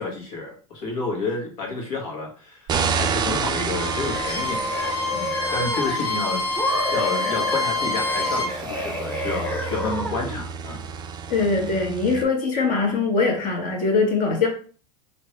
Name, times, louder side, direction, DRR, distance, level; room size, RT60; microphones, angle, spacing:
voice 1, 0.0-4.8 5.1-10.8, left 3 dB, 65° left, 1.6 m, -30 dB
sound 1, 2.7-12.2, right 6 dB, 20° right, 0.4 m, -31 dB
Bowed string instrument, 3.5-8.5, left 3 dB, 90° left, 1.1 m, -27 dB
sound 2, 3.8-6.1 6.6-10.4, equal, 10° left, 1.0 m, -31 dB
voice 2, 11.3-14.5, left 4 dB, 45° left, 1.3 m, -22 dB
2.9 x 2.6 x 3.2 m
hypercardioid pair, 110°, 20 cm